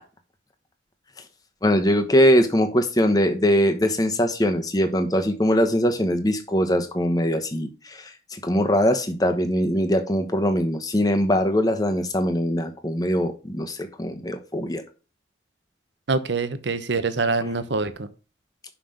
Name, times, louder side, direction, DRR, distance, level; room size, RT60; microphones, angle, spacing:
voice 1, 1.6-14.8, equal, 20° left, 6 dB, 1.1 m, -22 dB
voice 2, 16.1-18.1, right 3 dB, 75° right, 12 dB, 0.9 m, -25 dB
5.9 x 5.7 x 6.5 m, 0.34 s
head